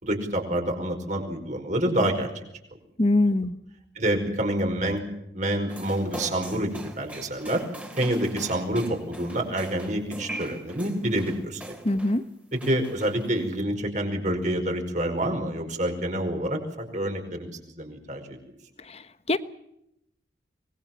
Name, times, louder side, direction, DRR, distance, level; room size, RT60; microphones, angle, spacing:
voice 1, 0.0-2.3 4.0-5.0 5.3-7.6 8.0-11.6 12.5-18.4, right 1 dB, 40° right, 4 dB, 5.2 m, -27 dB
voice 2, 3.0-3.5 11.8-12.2 19.3-19.4, left 2 dB, 35° left, 13 dB, 1.2 m, -22 dB
sound 1, 5.7-12.2 12.6-13.5, right 1 dB, 10° right, 3.5 m, -41 dB
25.0 x 21.0 x 7.4 m, 0.82 s
head